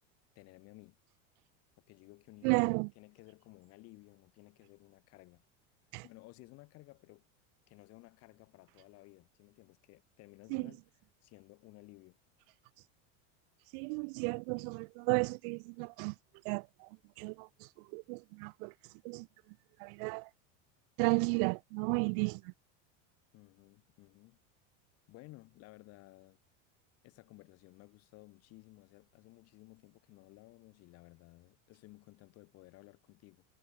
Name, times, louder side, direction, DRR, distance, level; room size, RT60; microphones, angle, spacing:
voice 1, 0.4-1.0 1.9-5.4 6.0-7.2 7.7-12.2 23.3-24.4 25.1-26.4 27.0-33.5, left 21 dB, 40° left, 6.8 m, -57 dB
voice 2, 2.4-2.9 5.9-6.0 10.5-10.7 13.7-16.1 16.4-16.9 17.2-17.5 17.9-18.7 19.0-19.3 19.8-20.3 21.0-22.4, right 38 dB, 45° right, 0.7 m, -33 dB
supercardioid pair, 175°, 37 cm